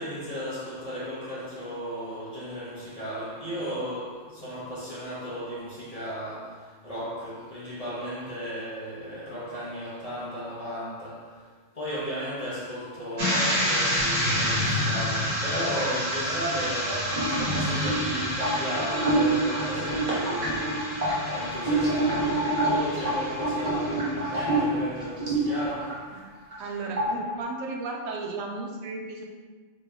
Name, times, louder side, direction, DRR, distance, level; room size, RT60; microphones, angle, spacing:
voice 1, 0.0-11.5 11.7-26.2, equal, 35° left, 0.7 m, -35 dB
sound 1, 13.2-25.9 26.3-26.7 27.0-27.3, right 1 dB, 40° right, 1.1 m, -26 dB
voice 2, 26.6-29.2, right 3 dB, 90° right, 1.0 m, -34 dB
3.1 x 2.7 x 3.3 m
omnidirectional pair, 1.3 m